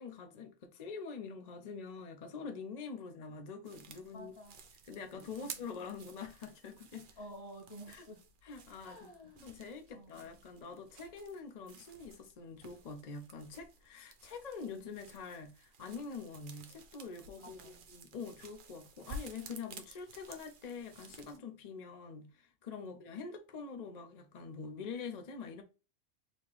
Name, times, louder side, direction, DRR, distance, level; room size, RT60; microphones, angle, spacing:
voice 1, 0.0-4.3 4.9-7.1 7.9-8.1 8.4-9.1 9.4-25.6, left 5 dB, 45° left, 0.6 m, -45 dB
sound 1, 3.6-21.4, right 3 dB, 55° right, 0.8 m, -53 dB
voice 2, 4.1-4.6 5.4-5.7 7.2-8.2 8.8-9.5 9.9-10.3 17.4-17.8 22.8-23.0, equal, 65° left, 1.6 m, -51 dB
4.1 x 2.8 x 3.2 m
omnidirectional pair, 1.1 m